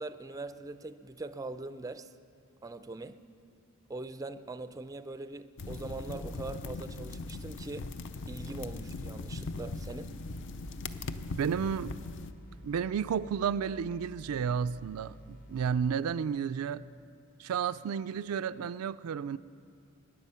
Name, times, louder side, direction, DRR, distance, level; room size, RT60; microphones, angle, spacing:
voice 1, 0.0-2.1 2.6-3.2 3.9-7.9 8.3-10.2, right 2 dB, 15° right, 0.4 m, -42 dB
sound 1, 5.6-12.3, left 3 dB, 60° left, 0.5 m, -40 dB
sound 2, 10.3-16.0, left 1 dB, 40° left, 1.1 m, -52 dB
voice 2, 11.4-12.0 12.6-16.8 17.4-19.4, right 7 dB, 85° right, 0.4 m, -32 dB
23.0 x 10.0 x 5.6 m
head